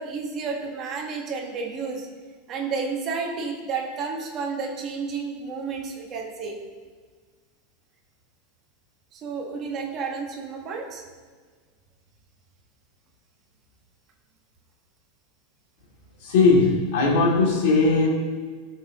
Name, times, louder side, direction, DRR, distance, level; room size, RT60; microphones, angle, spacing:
voice 1, 0.0-2.1 2.5-6.6 9.1-11.0, right 5 dB, 25° right, 0 dB, 1.4 m, -31 dB
voice 2, 16.2-18.1, left 3 dB, 60° left, -1 dB, 2.5 m, -19 dB
17.5 x 6.4 x 3.0 m, 1.5 s
supercardioid pair, 170°, 0 cm